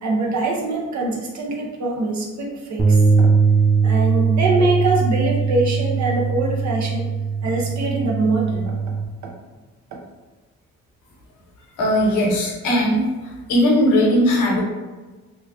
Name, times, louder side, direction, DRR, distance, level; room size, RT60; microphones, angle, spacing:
voice 1, 0.0-3.3 3.8-7.1 7.4-8.8 9.2-9.3 9.9-10.0, right 2 dB, 65° right, -1 dB, 0.8 m, -23 dB
sound 1, 2.8-9.0, right 5 dB, ahead, 0.5 m, -20 dB
voice 2, 11.8-13.0 13.5-14.6, equal, 85° left, -1 dB, 1.0 m, -18 dB
3.0 x 2.3 x 3.5 m, 1.3 s
cardioid pair, 90°, 30 cm